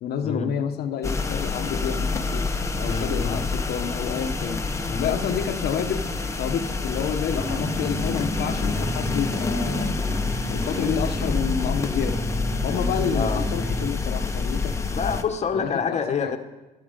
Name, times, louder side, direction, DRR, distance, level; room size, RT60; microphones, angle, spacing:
voice 1, 0.0-2.5 2.8-4.6 5.0-6.1 6.4-10.0 10.5-12.2 12.6-14.8 15.5-16.4, left 8 dB, 70° left, 7 dB, 1.2 m, -29 dB
sound 1, 1.0-15.2, left 4 dB, 15° left, 1.1 m, -27 dB
voice 2, 2.9-3.4 4.9-5.1 13.1-13.5 14.9-16.4, left 6 dB, 40° left, 7 dB, 1.3 m, -27 dB
sound 2, 7.3-13.9, right 2 dB, 15° right, 0.5 m, -33 dB
13.0 x 12.5 x 5.2 m, 1.1 s
cardioid pair, 110°, 17 cm